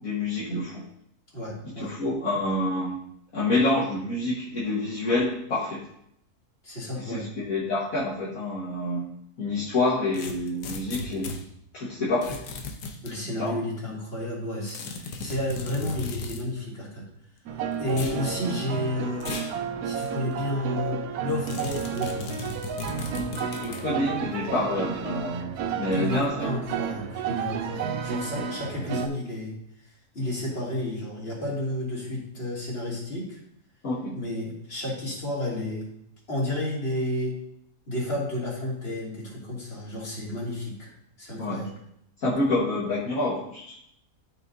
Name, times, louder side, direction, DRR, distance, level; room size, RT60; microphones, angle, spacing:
voice 1, 0.0-0.8 1.8-3.0 3.3-5.8 7.0-9.0 9.4-11.3 11.7-12.4 13.4-13.6 23.5-26.5 33.8-34.2 41.4-41.6 42.2-43.8, left 2 dB, 60° left, -8 dB, 1.9 m, -27 dB
voice 2, 1.3-1.9 6.6-7.3 13.0-17.0 17.8-19.3 19.8-22.3 25.9-29.6 30.1-33.4 34.2-35.9 36.3-37.4 37.9-40.9 41.2-41.7, left 1 dB, 40° left, -6 dB, 3.1 m, -31 dB
sound 1, 10.1-11.4 12.2-13.1 14.7-16.5 17.9-18.2 19.2-19.6 20.0-20.1 21.5-23.9, left 3 dB, 90° left, 1.4 m, -36 dB
sound 2, 17.5-29.1, right 6 dB, 75° right, 1.2 m, -32 dB
12.5 x 5.8 x 2.7 m, 0.73 s
omnidirectional pair, 1.7 m